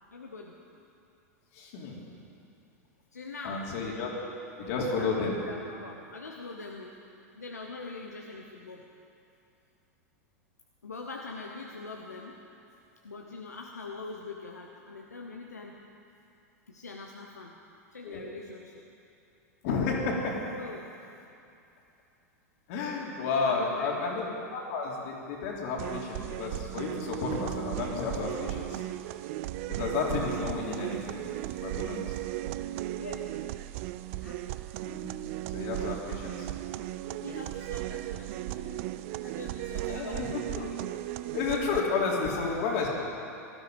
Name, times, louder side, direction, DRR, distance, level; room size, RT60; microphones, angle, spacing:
voice 1, 0.1-0.5 3.1-3.6 5.0-7.0 7.4-8.9 10.8-12.4 13.0-15.8 16.7-17.5 17.9-18.8 20.5-20.9 23.4-24.0 33.0-33.3 34.2-34.4 37.1-38.9 39.2-40.4, left 3 dB, 90° left, 1 dB, 1.0 m, -43 dB
voice 2, 1.5-2.0 3.4-4.1 4.6-5.4 18.0-18.2 19.6-20.4 22.7-28.8 29.7-31.2 31.6-32.1 34.8-35.1 35.5-36.5 39.9-40.7 41.3-42.9, left 4 dB, 60° left, -2 dB, 3.4 m, -31 dB
sound 1, 25.8-41.8, right 15 dB, 55° right, 0.5 m, -36 dB
18.0 x 12.0 x 5.1 m, 2.7 s
hypercardioid pair, 95°, 9 cm